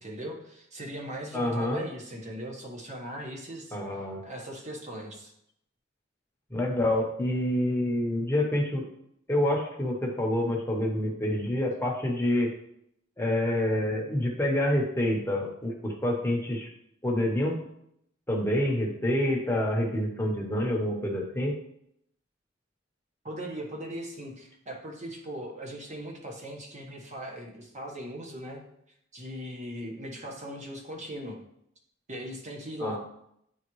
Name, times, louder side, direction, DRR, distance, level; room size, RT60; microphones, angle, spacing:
voice 1, 0.0-3.8 4.2-5.3 23.2-28.6 29.1-31.4 32.1-33.0, right 1 dB, 40° right, 0 dB, 1.3 m, -39 dB
voice 2, 1.3-1.8 3.7-4.2 6.5-8.9 9.3-12.5 13.2-16.7 17.0-17.6 18.3-21.6 32.8-33.0, left 1 dB, 10° left, 0 dB, 1.0 m, -27 dB
9.3 x 3.5 x 3.1 m, 0.75 s
head